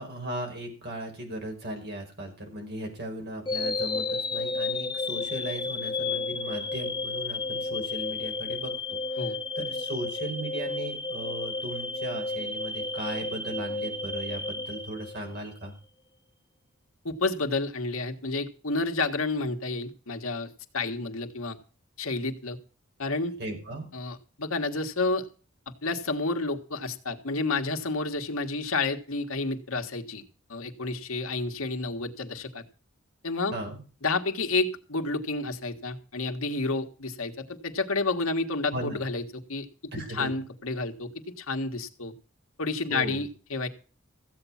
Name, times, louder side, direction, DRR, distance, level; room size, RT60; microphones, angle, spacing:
voice 1, 0.0-15.7 23.4-23.9 33.5-33.8 38.7-39.0 39.9-40.3 42.9-43.3, right 1 dB, 50° right, 2 dB, 5.2 m, -37 dB
sound 1, 3.5-15.6, left 3 dB, 20° left, 0.8 m, -32 dB
voice 2, 17.0-20.5 20.7-21.6 22.0-22.6 23.0-23.3 23.9-25.3 25.8-30.2 30.5-32.6 33.2-33.5 34.0-39.7 40.1-41.1 41.4-42.1 42.6-43.7, left 3 dB, 80° left, 5 dB, 1.7 m, -30 dB
15.5 x 8.4 x 5.8 m, 0.37 s
head